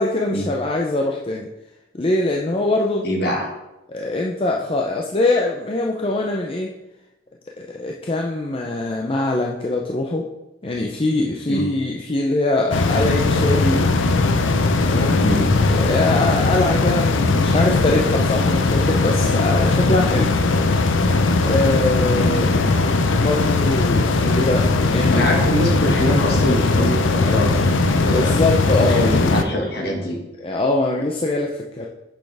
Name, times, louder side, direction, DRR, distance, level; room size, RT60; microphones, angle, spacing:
voice 1, 0.0-1.5 1.9-3.1 3.9-6.7 7.6-10.3 10.6-13.9 14.8-15.2 15.7-20.3 21.4-22.5 23.1-25.3 28.1-29.5 30.4-31.9, left 2 dB, 30° left, 0 dB, 0.5 m, -22 dB
voice 2, 3.0-3.5 11.5-11.6 15.2-15.4 22.1-22.5 25.1-28.4 28.8-30.2, left 1 dB, 55° left, 0 dB, 1.6 m, -23 dB
sound 1, 12.7-29.4, left 3 dB, 85° left, 0.6 m, -19 dB
8.2 x 6.3 x 3.4 m, 0.95 s
head